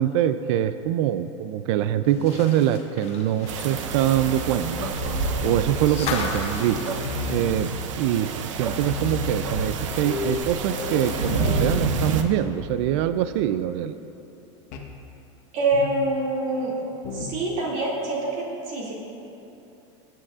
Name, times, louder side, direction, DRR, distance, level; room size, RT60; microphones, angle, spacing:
voice 1, 0.0-5.0 5.4-6.8 7.3-14.0, right 11 dB, 70° right, 11 dB, 0.4 m, -24 dB
sound 1, 2.1-8.1 8.5-8.6 9.9-10.0, left 4 dB, 40° left, 1.3 m, -36 dB
sound 2, 3.5-12.2, right 5 dB, 90° right, 0.8 m, -29 dB
sound 3, 4.1-6.5 6.7-8.0 8.4-8.5 8.7-12.8 13.1-13.4 14.7-15.0 15.7-16.1 17.0-17.5, left 3 dB, 60° left, 1.1 m, -33 dB
voice 2, 15.5-16.7 17.1-18.9, right 2 dB, 50° right, -4 dB, 2.3 m, -25 dB
18.0 x 8.8 x 2.4 m, 2.9 s
supercardioid pair, 120°, 16 cm